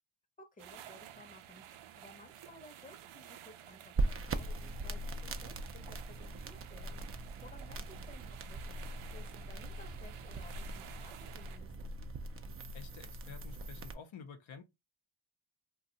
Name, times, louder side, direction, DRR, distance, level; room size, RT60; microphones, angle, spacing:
voice 1, 0.4-7.0 7.4-11.7, left 1 dB, 15° left, 0.8 m, -57 dB
sound 1, 0.6-11.6, right 11 dB, 80° right, 0.6 m, -53 dB
sound 2, 4.0-13.9, right 2 dB, 30° right, 0.4 m, -40 dB
voice 2, 12.7-14.6, left 5 dB, 70° left, 0.7 m, -50 dB
2.5 x 2.3 x 3.9 m
cardioid pair, 85°, 49 cm